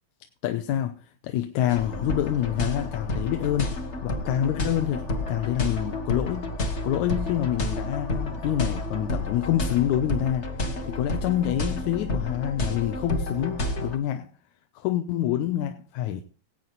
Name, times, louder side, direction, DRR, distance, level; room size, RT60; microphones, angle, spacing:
voice 1, 0.4-6.5 6.8-14.3 14.8-16.2, left 12 dB, 80° left, 2.2 m, -27 dB
sound 1, 1.7-14.0, left 2 dB, 60° left, 0.7 m, -30 dB
18.5 x 8.5 x 4.0 m
omnidirectional pair, 3.4 m